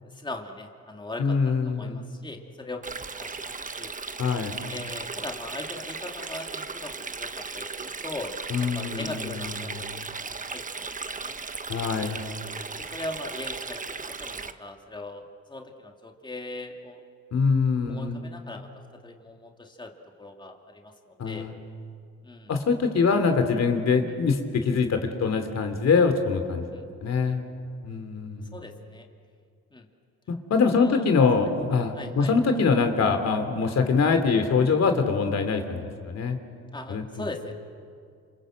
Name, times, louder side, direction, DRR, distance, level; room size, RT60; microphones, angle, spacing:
voice 1, 0.0-1.4 1.6-3.9 4.7-10.1 10.5-11.3 12.0-12.2 12.8-17.0 17.9-19.9 20.2-21.5 22.2-22.5 26.7-26.9 28.5-29.1 29.7-29.9 30.8-31.0 31.9-32.3 33.7-33.8 36.7-37.5, left 2 dB, 15° left, 2 dB, 2.5 m, -40 dB
voice 2, 1.2-2.0 4.2-4.6 8.5-9.8 11.7-12.2 17.3-18.2 21.2-21.5 22.5-27.4 27.8-28.6 30.3-36.4 36.9-37.0, left 5 dB, 60° left, 7 dB, 3.1 m, -24 dB
Stream, 2.8-14.5, right 4 dB, 25° right, 1.2 m, -36 dB
27.5 x 27.0 x 7.9 m, 2.3 s
cardioid pair, 90°, 30 cm